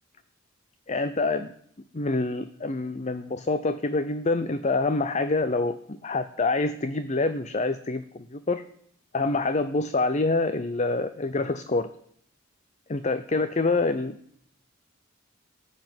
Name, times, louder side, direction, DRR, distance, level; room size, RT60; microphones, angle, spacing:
voice 1, 0.9-1.5 1.9-8.6 9.1-11.9 12.9-14.2, left 3 dB, 35° left, 12 dB, 0.6 m, -26 dB
15.0 x 9.9 x 7.8 m, 0.66 s
head